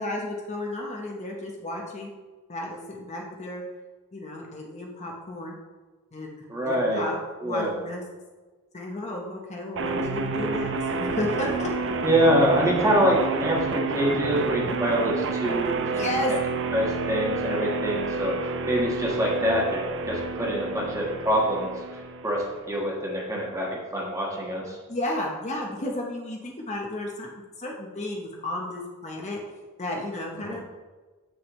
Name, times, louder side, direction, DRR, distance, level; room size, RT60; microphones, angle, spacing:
voice 1, 0.0-2.1 2.5-3.6 4.1-5.6 6.1-7.2 7.4-8.0 8.7-10.7 11.0-11.7 16.0-16.3 24.9-27.3 27.6-29.4 29.8-30.6, left 1 dB, 30° left, 0 dB, 0.8 m, -32 dB
voice 2, 6.5-7.0 7.4-7.7 12.0-16.1 16.7-21.7 22.2-24.8 30.4-30.6, equal, 15° right, -3 dB, 1.3 m, -25 dB
sound 1, 9.8-22.7, right 3 dB, 60° right, 0.6 m, -29 dB
7.8 x 6.3 x 3.1 m, 1.3 s
head